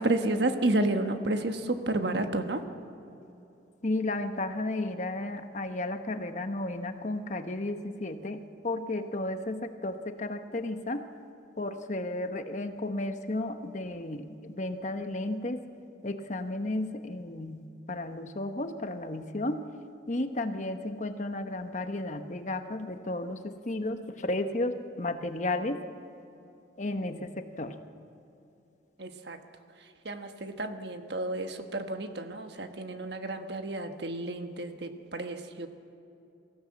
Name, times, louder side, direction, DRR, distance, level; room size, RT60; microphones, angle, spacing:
voice 1, 0.0-2.6 29.0-29.4 29.8-35.7, right 2 dB, 65° right, 6 dB, 1.3 m, -31 dB
voice 2, 3.8-11.0 11.6-15.6 16.0-19.7 20.1-25.8 26.8-27.8, left 2 dB, 40° left, 7 dB, 1.0 m, -33 dB
23.5 x 15.5 x 7.6 m, 2.9 s
head